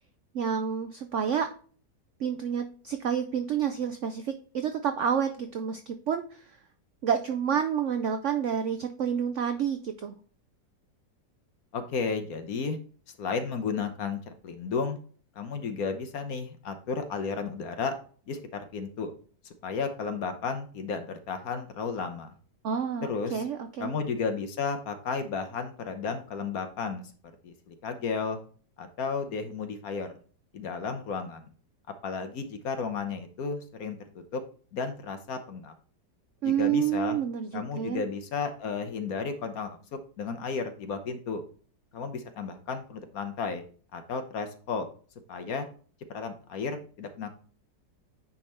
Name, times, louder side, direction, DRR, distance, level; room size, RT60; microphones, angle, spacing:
voice 1, 0.3-1.5 2.2-6.4 7.0-10.1 22.6-24.0 36.4-38.1, right 8 dB, 70° right, 8 dB, 0.7 m, -29 dB
voice 2, 11.7-12.8 13.2-15.0 15.4-17.9 18.3-18.4 18.7-19.1 19.4-22.3 23.0-23.4 23.8-27.0 27.4-28.4 28.8-30.1 30.5-31.4 32.0-34.0 34.3-34.4 34.7-35.7 36.4-37.2 37.5-39.8 40.2-41.4 41.9-43.6 43.9-44.9 45.3-45.7 46.1-47.3, left 5 dB, 60° left, 8 dB, 1.2 m, -33 dB
9.6 x 3.6 x 4.3 m, 0.42 s
omnidirectional pair, 1.9 m